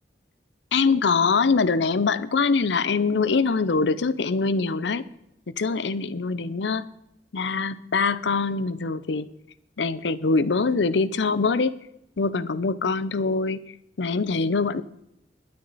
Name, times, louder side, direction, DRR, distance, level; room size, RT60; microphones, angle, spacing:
voice 1, 0.7-5.1 5.5-6.9 7.3-9.3 9.8-11.7 12.2-13.6 14.0-14.8, left 4 dB, 85° left, 17 dB, 0.6 m, -23 dB
21.0 x 9.7 x 4.1 m, 0.82 s
head